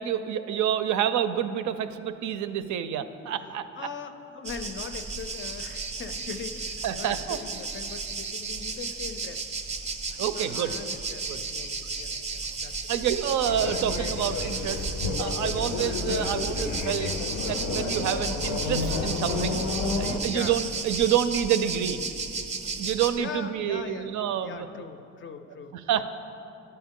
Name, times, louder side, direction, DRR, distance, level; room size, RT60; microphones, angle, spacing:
voice 1, 0.0-3.9 6.8-7.4 10.2-10.7 11.3-11.4 12.9-14.9 15.2-17.1 17.5-19.6 20.0-22.0 22.8-24.7 25.9-26.0, right 10 dB, 70° right, 11 dB, 0.4 m, -28 dB
voice 2, 3.3-9.5 10.3-13.1 20.2-20.6 23.1-24.1 24.4-26.0, left 6 dB, 40° left, 9 dB, 0.4 m, -41 dB
sound 1, 4.4-23.2, right 4 dB, 20° right, 0.5 m, -34 dB
sound 2, 13.4-20.2, left 4 dB, 90° left, 0.6 m, -30 dB
11.5 x 4.4 x 3.6 m, 2.7 s
cardioid pair, 90°, 30 cm